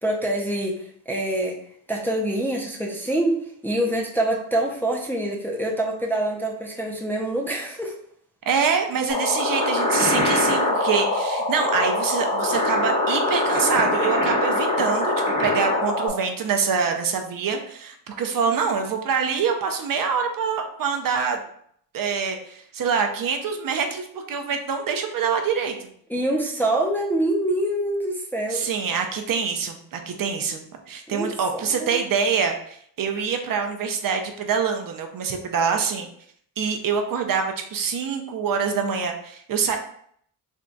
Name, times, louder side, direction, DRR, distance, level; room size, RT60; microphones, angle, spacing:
voice 1, 0.0-1.6 1.9-3.4 3.6-8.0 26.1-28.7 31.1-32.0, right 1 dB, 5° left, -2 dB, 0.5 m, -25 dB
voice 2, 8.5-15.1 15.4-21.4 21.9-25.9 28.5-36.1 36.6-39.8, right 6 dB, 50° right, 4 dB, 0.5 m, -25 dB
sound 1, 9.1-16.1, left 1 dB, 45° left, 1.2 m, -23 dB
3.5 x 2.2 x 3.8 m, 0.65 s
cardioid pair, 130°, 43 cm